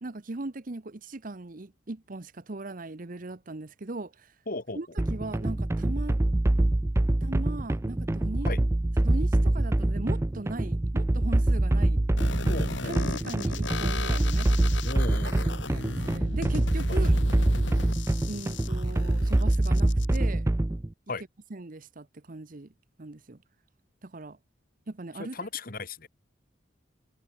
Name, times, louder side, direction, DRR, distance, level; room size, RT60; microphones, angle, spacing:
voice 1, 0.0-4.3 4.7-6.2 7.2-8.5 9.0-12.0 12.8-14.5 15.5-17.1 18.3-20.5 21.5-22.7 23.0-23.4 24.0-24.4 24.9-25.4, right 2 dB, 45° right, 0.9 m, -39 dB
voice 2, 4.5-4.8 8.4-8.6 12.5-13.0 14.8-15.6 16.9-17.0 21.1-21.2 25.2-26.1, left 3 dB, 50° left, 2.0 m, -36 dB
sound 1, 5.0-20.9, right 1 dB, 15° right, 0.3 m, -25 dB
sound 2, 12.2-20.2, left 3 dB, 70° left, 2.7 m, -37 dB
head